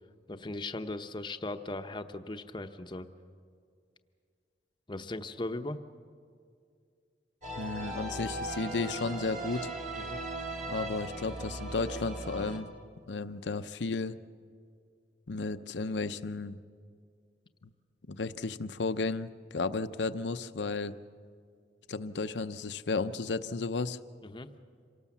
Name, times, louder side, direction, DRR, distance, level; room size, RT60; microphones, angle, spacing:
voice 1, 0.3-3.1 4.9-5.8 9.9-10.2 24.2-24.5, left 2 dB, 25° left, 8 dB, 0.8 m, -38 dB
sound 1, 7.4-12.6, right 2 dB, 45° right, 3.4 m, -38 dB
voice 2, 7.6-9.7 10.7-12.7 13.1-14.2 15.3-16.6 18.1-21.0 21.9-24.0, left 3 dB, 80° left, 11 dB, 0.7 m, -33 dB
27.0 x 18.0 x 7.2 m, 2.2 s
head